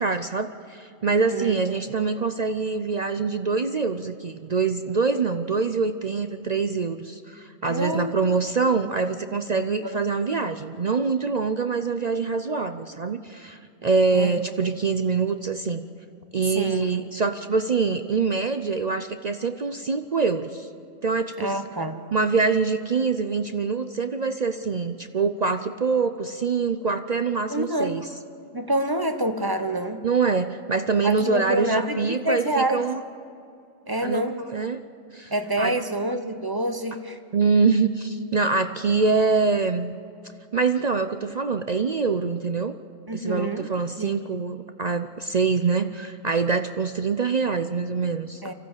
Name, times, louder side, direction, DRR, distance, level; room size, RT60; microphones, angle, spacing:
voice 1, 0.0-15.8 16.3-20.7 21.0-21.6 22.1-28.1 30.0-33.0 34.0-34.8 35.1-35.8 37.3-40.0 40.5-42.8 43.1-48.4, right 4 dB, 45° right, 9 dB, 0.5 m, -25 dB
voice 2, 7.7-8.4 9.8-10.0 14.1-14.3 16.6-16.9 21.4-22.0 27.5-28.1 28.5-30.0 31.0-32.8 33.9-34.4 35.3-37.2 43.1-43.7 44.0-44.2 48.4-48.5, right 1 dB, 20° right, 8 dB, 0.9 m, -27 dB
25.0 x 15.5 x 8.1 m, 2.5 s
omnidirectional pair, 1.3 m